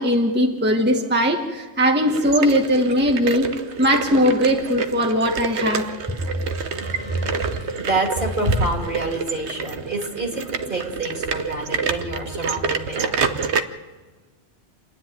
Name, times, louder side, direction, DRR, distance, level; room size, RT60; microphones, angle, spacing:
voice 1, 0.0-3.5 3.8-5.8, equal, 10° right, 2 dB, 1.1 m, -19 dB
sound 1, 2.1-13.6, right 5 dB, 75° right, 1.2 m, -28 dB
voice 2, 6.2-13.5, right 2 dB, 45° right, 1 dB, 2.9 m, -27 dB
28.0 x 10.0 x 9.3 m, 1.3 s
omnidirectional pair, 1.2 m